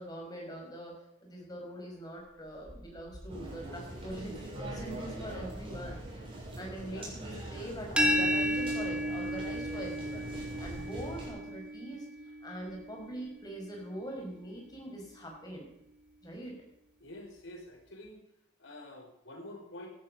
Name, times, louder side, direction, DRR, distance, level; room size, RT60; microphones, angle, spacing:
voice 1, 0.0-6.0 6.6-10.3 10.6-15.7 16.2-16.6, right 1 dB, 20° left, 0 dB, 5.5 m, -43 dB
sound 1, 2.2-11.9 12.3-12.4 12.6-13.6, equal, 50° left, 4.9 m, -54 dB
sound 2, 3.3-11.3, right 1 dB, 30° right, 7.0 m, -42 dB
sound 3, 8.0-13.7, equal, 5° right, 1.9 m, -33 dB
voice 2, 17.0-18.3 18.6-19.9, left 1 dB, 80° left, 0 dB, 5.4 m, -47 dB
16.5 x 12.0 x 5.2 m, 0.78 s
head